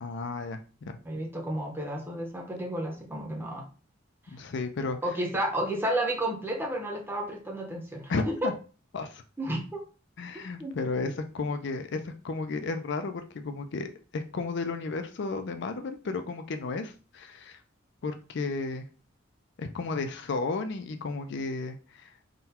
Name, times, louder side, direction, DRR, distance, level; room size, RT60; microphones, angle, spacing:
voice 1, 0.0-1.0 4.3-5.0 8.1-8.5 8.9-9.2 10.2-17.6 18.0-18.8 19.6-22.1, left 3 dB, 60° left, 7 dB, 0.5 m, -33 dB
voice 2, 1.0-3.6 5.0-8.5 9.4-9.8 10.6-11.1, right 1 dB, 10° right, 1 dB, 0.8 m, -32 dB
3.8 x 2.2 x 4.2 m, 0.36 s
head